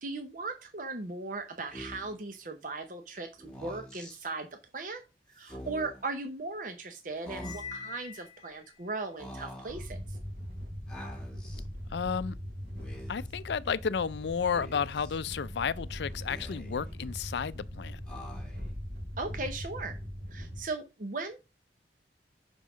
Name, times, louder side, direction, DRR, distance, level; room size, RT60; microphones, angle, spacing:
voice 1, 0.0-4.5 4.7-5.0 5.3-10.0 19.2-20.0 20.3-21.4, right 3 dB, 45° right, 0.8 m, -38 dB
Speech, 1.7-2.2 3.4-4.2 5.4-6.0 7.2-7.9 9.2-9.8 10.9-11.6 12.7-13.3 14.5-15.2 16.1-16.9 18.1-18.8, equal, 5° left, 1.5 m, -45 dB
Cymbal, 7.3-8.8, left 7 dB, 20° left, 1.0 m, -44 dB
sound 1, 9.7-20.6, equal, 65° right, 3.9 m, -41 dB
voice 2, 11.9-12.4 13.1-18.0, left 6 dB, 75° left, 0.4 m, -32 dB
5.6 x 5.2 x 6.0 m
head